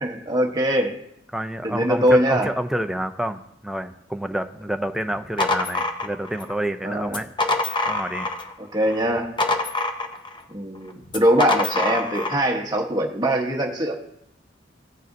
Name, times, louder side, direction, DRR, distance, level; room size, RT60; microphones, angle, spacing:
voice 1, 0.0-1.0 1.6-2.5 6.8-7.2 8.6-9.3 10.5-14.0, equal, 25° right, 0 dB, 1.0 m, -22 dB
voice 2, 1.3-7.3 7.9-8.3, right 1 dB, 5° right, 7 dB, 0.4 m, -28 dB
sound 1, 5.1-6.5 7.1-8.5 8.9-10.4 11.1-12.4, left 2 dB, 25° left, 0.7 m, -25 dB
15.0 x 6.6 x 2.6 m, 0.76 s
head